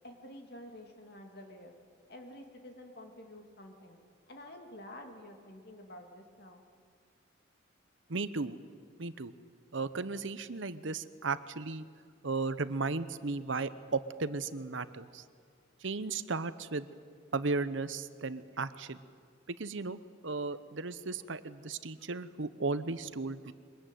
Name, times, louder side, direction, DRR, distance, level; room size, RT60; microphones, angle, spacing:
voice 1, 0.0-1.7 2.1-4.0 4.3-6.6, left 1 dB, 50° left, 3 dB, 2.8 m, -49 dB
voice 2, 8.1-8.6 9.0-9.3 9.7-11.8 12.2-15.2 15.8-16.9 17.3-19.0 19.5-23.5, right 3 dB, 70° right, 13 dB, 0.9 m, -35 dB
23.5 x 21.0 x 9.3 m, 2.1 s
head